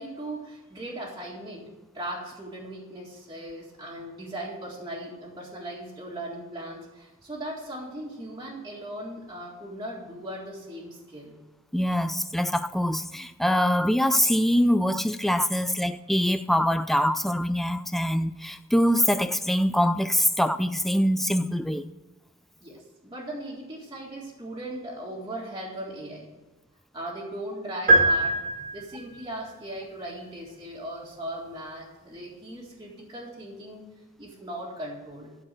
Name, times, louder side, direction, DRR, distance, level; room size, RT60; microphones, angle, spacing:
voice 1, 0.0-1.7 1.9-11.4 22.6-26.3 26.9-28.4 28.7-33.8 34.2-35.4, right 1 dB, 20° right, 1.9 m, -38 dB
voice 2, 11.7-21.9, equal, ahead, 0.3 m, -24 dB
sound 1, 27.9-29.2, right 2 dB, 40° right, 1.9 m, -21 dB
13.0 x 4.6 x 7.6 m
head